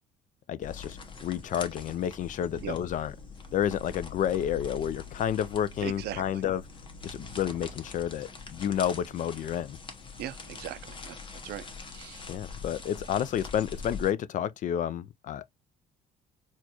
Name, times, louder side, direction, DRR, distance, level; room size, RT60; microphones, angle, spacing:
voice 1, 0.5-3.1 3.5-6.6 7.0-9.8 12.3-15.5, left 10 dB, 50° left, 0.4 m, -30 dB
sound 1, 0.6-14.1, left 4 dB, 30° left, 0.9 m, -43 dB
voice 2, 5.8-6.4 10.2-11.2 11.4-11.7 11.9-12.2, right 12 dB, 70° right, 0.5 m, -39 dB
4.3 x 2.4 x 2.8 m
cardioid pair, 110°, 17 cm